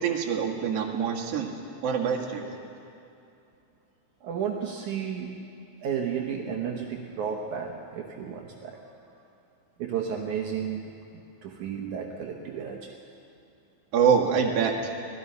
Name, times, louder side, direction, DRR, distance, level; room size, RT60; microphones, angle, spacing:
voice 1, 0.0-1.5 1.8-2.4 13.9-14.9, right 6 dB, 50° right, 0 dB, 2.7 m, -25 dB
voice 2, 4.2-5.4 5.8-8.8 9.8-10.9 11.4-13.0, right 7 dB, 70° right, 1 dB, 2.4 m, -32 dB
25.5 x 18.5 x 5.6 m, 2.7 s
omnidirectional pair, 4.0 m